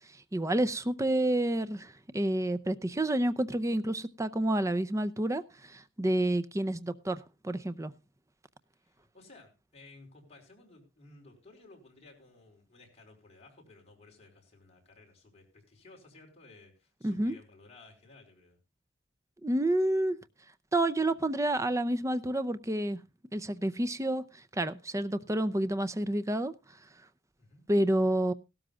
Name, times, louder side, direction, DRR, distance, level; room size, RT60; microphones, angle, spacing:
voice 1, 0.3-7.9 17.0-17.4 19.4-20.2 20.7-23.0 23.3-26.5 27.7-28.3, right 1 dB, 15° right, 0.6 m, -29 dB
voice 2, 8.8-18.6 27.4-27.6, left 2 dB, 35° left, 4.7 m, -56 dB
17.0 x 13.0 x 2.4 m
head